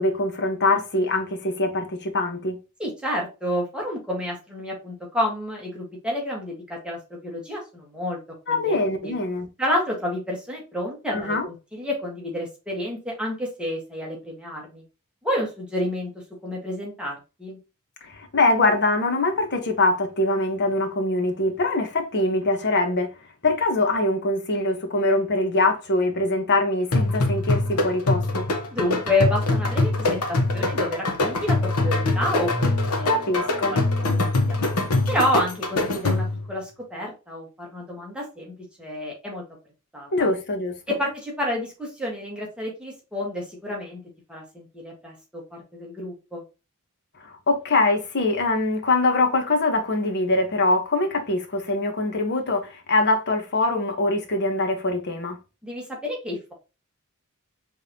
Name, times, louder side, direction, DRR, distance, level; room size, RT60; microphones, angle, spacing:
voice 1, 0.0-2.6 8.5-9.5 11.1-11.5 18.0-23.1 23.4-28.5 33.1-33.8 40.1-40.8 47.2-55.4, left 2 dB, 50° left, 1.1 m, -23 dB
voice 2, 2.8-8.2 8.5-8.8 9.0-9.1 9.6-14.8 15.2-16.1 16.4-17.6 28.7-33.1 33.4-33.8 34.1-34.6 35.1-39.4 39.9-40.3 40.9-44.0 44.3-46.4 55.6-56.5, left 1 dB, 5° right, 1.5 m, -29 dB
sound 1, 26.9-36.5, left 2 dB, 90° left, 1.1 m, -23 dB
5.2 x 3.4 x 2.8 m
head